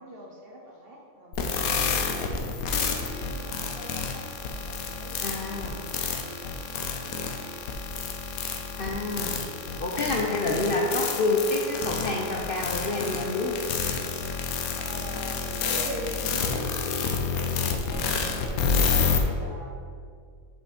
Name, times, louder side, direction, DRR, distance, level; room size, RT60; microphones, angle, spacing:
voice 1, 0.0-2.3 3.1-5.7 6.4-7.9 14.7-18.7 19.2-19.7, right 1 dB, 45° right, -1 dB, 1.1 m, -42 dB
sound 1, 1.3-19.2, left 5 dB, 90° left, 1.2 m, -29 dB
voice 2, 5.2-5.8 8.8-9.3 9.8-13.5, left 2 dB, 50° left, -1 dB, 0.8 m, -28 dB
7.6 x 5.6 x 4.3 m, 2.2 s
omnidirectional pair, 1.5 m